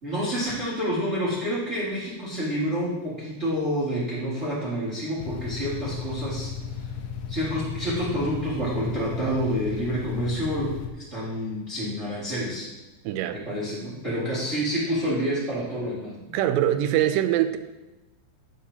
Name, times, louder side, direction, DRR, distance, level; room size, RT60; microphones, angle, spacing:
voice 1, 0.0-6.5 6.8-6.9 7.3-12.7 13.3-16.3, equal, 35° right, -8 dB, 1.1 m, -28 dB
sound 1, 5.2-10.9, left 7 dB, 85° left, 2.1 m, -35 dB
voice 2, 13.1-13.4 16.3-17.6, right 12 dB, 85° right, 9 dB, 2.6 m, -23 dB
9.7 x 7.5 x 2.8 m, 1.0 s
omnidirectional pair, 5.0 m